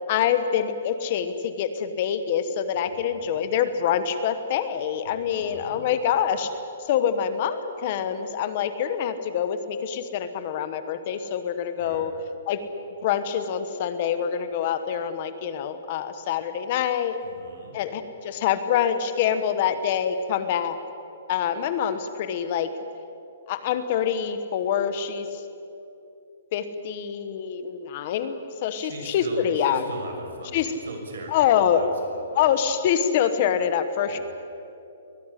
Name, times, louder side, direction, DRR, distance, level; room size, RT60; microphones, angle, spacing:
voice 1, 0.1-6.5 6.9-12.1 12.5-12.7 13.0-17.2 17.7-20.8 21.3-22.7 23.5-25.4 26.5-28.3 28.6-29.8 30.5-30.7 31.3-31.8 32.3-34.2, left 8 dB, 30° left, 10 dB, 1.1 m, -25 dB
voice 2, 2.7-3.3 5.0-5.9 11.8-12.1 17.2-17.8 28.7-32.4 34.1-34.2, right 2 dB, 70° right, 3 dB, 6.3 m, -40 dB
23.0 x 17.5 x 10.0 m, 2.7 s
hypercardioid pair, 180°, 0 cm